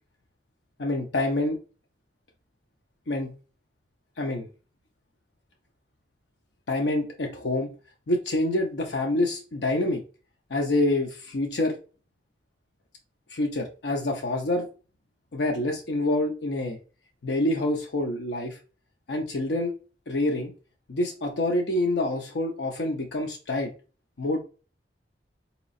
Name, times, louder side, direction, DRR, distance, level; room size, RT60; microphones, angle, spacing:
voice 1, 0.8-1.6 3.1-3.3 4.2-4.5 6.7-7.7 8.1-10.0 10.5-11.8 13.3-14.7 15.3-16.8 17.2-18.6 19.1-19.7 20.1-20.5 20.9-23.7 24.2-24.4, left 1 dB, 70° left, 1 dB, 0.6 m, -26 dB
4.0 x 2.9 x 2.5 m, 0.35 s
head